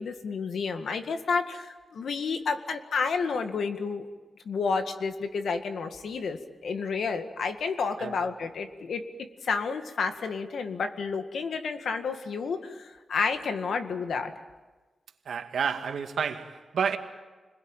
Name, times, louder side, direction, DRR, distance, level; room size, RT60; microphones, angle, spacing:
voice 1, 0.0-4.1 4.5-9.1 9.4-14.3, left 5 dB, 80° left, 1.9 m, -30 dB
voice 2, 15.3-17.0, right 6 dB, 90° right, 2.0 m, -30 dB
30.0 x 21.5 x 9.0 m
wide cardioid pair, 145°, 0 cm